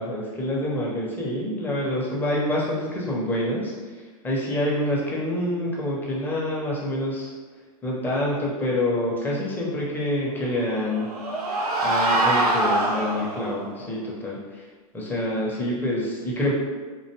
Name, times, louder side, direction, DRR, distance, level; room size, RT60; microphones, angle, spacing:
voice 1, 0.0-7.3 7.8-11.2 11.8-14.7 14.9-16.6, left 1 dB, 10° left, -4 dB, 0.6 m, -27 dB
sound 1, 10.6-13.6, right 1 dB, 85° right, 0.6 m, -24 dB
2.5 x 2.2 x 2.8 m, 1.4 s
hypercardioid pair, 100°, 19 cm